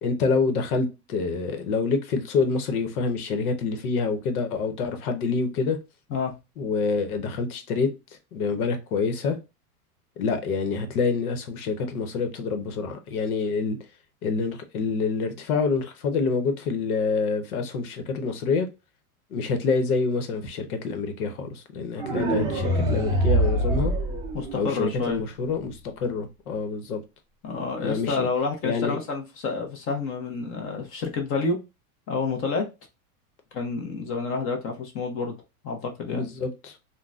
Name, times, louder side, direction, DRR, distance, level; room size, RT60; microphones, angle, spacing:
voice 1, 0.0-5.8 6.6-7.9 8.3-9.4 10.2-13.8 14.2-18.7 19.3-23.9 24.5-27.0 27.8-28.3 28.6-29.0 36.1-36.7, left 4 dB, 85° left, 1.0 m, -27 dB
sound 1, 22.0-25.0, right 1 dB, 10° right, 0.4 m, -24 dB
voice 2, 24.3-25.2 27.4-31.6 32.1-32.6 33.5-35.3 35.6-36.3, left 4 dB, 30° left, 0.8 m, -29 dB
3.8 x 2.2 x 2.4 m
supercardioid pair, 140°, 43 cm